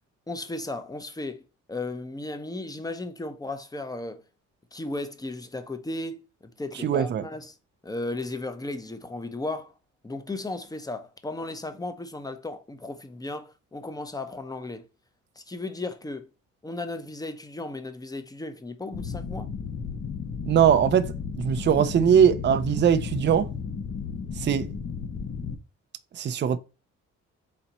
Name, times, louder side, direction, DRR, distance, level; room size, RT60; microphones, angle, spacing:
voice 1, 0.3-1.4 1.7-4.2 4.7-7.5 7.8-9.7 10.0-14.8 15.4-16.3 16.6-19.5, left 2 dB, 10° left, 0.7 m, -35 dB
voice 2, 6.8-7.3 20.5-23.5 24.4-24.7 26.2-26.6, right 8 dB, 35° right, 0.5 m, -21 dB
sound 1, 18.9-25.6, left 6 dB, 45° left, 0.9 m, -34 dB
4.2 x 2.8 x 4.1 m
cardioid pair, 90°, 30 cm